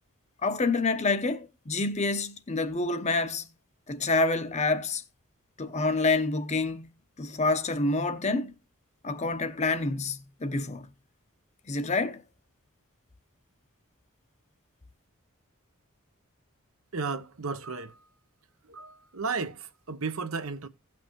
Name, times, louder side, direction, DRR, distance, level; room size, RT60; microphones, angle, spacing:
voice 1, 0.4-3.5 3.9-5.0 5.6-6.9 7.2-8.5 9.0-10.9 11.7-12.2, left 3 dB, 35° left, 0.8 m, -27 dB
voice 2, 16.9-18.0 18.7-20.7, right 4 dB, 80° right, 0.9 m, -34 dB
16.5 x 6.0 x 3.0 m
head